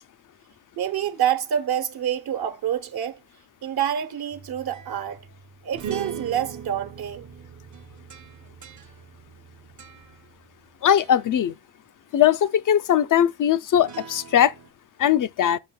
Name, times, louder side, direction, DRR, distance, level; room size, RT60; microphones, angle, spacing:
voice 1, 0.8-3.2 3.6-5.3 5.6-7.3, right 10 dB, 70° right, 1.0 m, -27 dB
sound 1, 4.3-10.7 11.0-11.4 13.7-14.7, right 7 dB, 45° right, 0.8 m, -40 dB
voice 2, 10.8-11.5 12.1-14.5 15.0-15.6, left 10 dB, 55° left, 0.4 m, -20 dB
9.0 x 5.5 x 2.2 m
cardioid pair, 90°, 39 cm